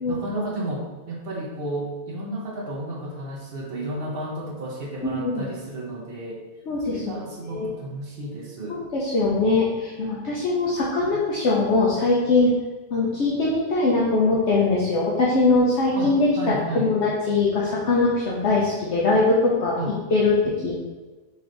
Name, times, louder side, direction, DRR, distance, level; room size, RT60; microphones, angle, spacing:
voice 1, 0.1-6.4 6.9-8.8 11.0-11.2 16.0-17.0 19.8-19.9, right 1 dB, 50° right, -2 dB, 0.9 m, -32 dB
voice 2, 5.0-5.5 6.7-7.0 7.4-7.7 8.7-12.5 12.9-19.8 20.1-20.8, left 3 dB, 60° left, -5 dB, 1.0 m, -22 dB
4.2 x 3.3 x 3.8 m, 1.2 s
omnidirectional pair, 1.4 m